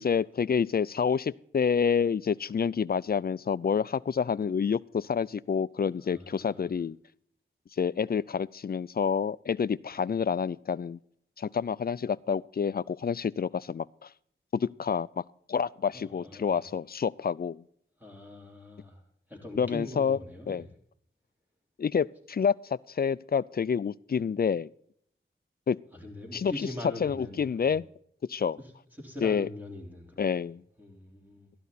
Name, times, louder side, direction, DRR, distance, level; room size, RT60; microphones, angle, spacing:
voice 1, 0.0-7.0 7.8-11.0 11.4-14.1 14.5-15.2 15.5-17.6 19.6-20.2 20.5-20.7 21.8-24.7 25.7-25.8 26.3-26.5 27.0-27.9 28.3-28.6 29.2-29.5 30.2-30.6, left 6 dB, 45° left, 20 dB, 0.4 m, -28 dB
voice 2, 6.0-6.7 15.9-16.7 18.0-19.0 19.3-20.7 25.9-27.7 28.6-28.7 29.0-30.2 30.8-31.5, left 1 dB, 10° right, 1 dB, 3.7 m, -42 dB
13.0 x 11.5 x 4.1 m, 0.67 s
wide cardioid pair, 65°, 21 cm